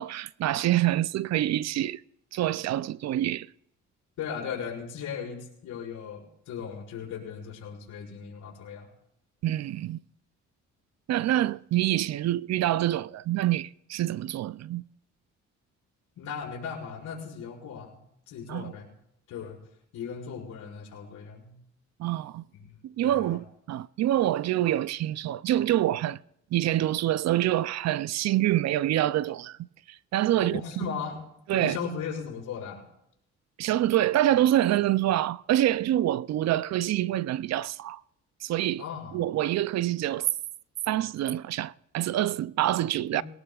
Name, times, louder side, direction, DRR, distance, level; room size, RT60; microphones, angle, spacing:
voice 1, 0.0-2.0 2.3-3.5 9.4-10.0 11.1-14.8 18.5-18.7 22.0-22.4 22.8-26.2 26.5-29.6 29.9-30.6 31.5-31.8 33.6-38.0 38.4-38.8 39.1-40.3 40.9-43.2, right 13 dB, 60° right, 0.4 m, -26 dB
voice 2, 4.2-8.9 16.2-18.0 18.3-18.9 19.3-19.6 19.9-21.6 22.5-23.4 30.4-31.2 31.5-32.8 38.8-39.2 43.1-43.2, left 6 dB, 80° left, 5.5 m, -37 dB
21.5 x 18.5 x 2.4 m
cardioid pair, 90°, 30 cm